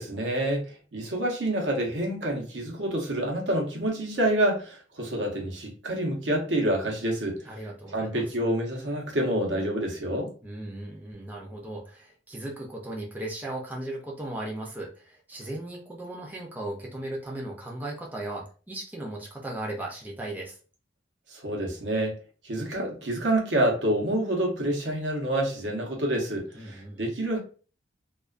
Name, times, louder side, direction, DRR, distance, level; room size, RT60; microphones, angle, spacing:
voice 1, 0.0-7.4 7.9-10.3 21.3-22.2 22.4-27.4, right 1 dB, 80° right, 0.8 m, -27 dB
voice 2, 7.4-8.2 10.4-20.6 26.5-27.1, right 1 dB, 10° right, 0.5 m, -37 dB
2.4 x 2.2 x 2.4 m
head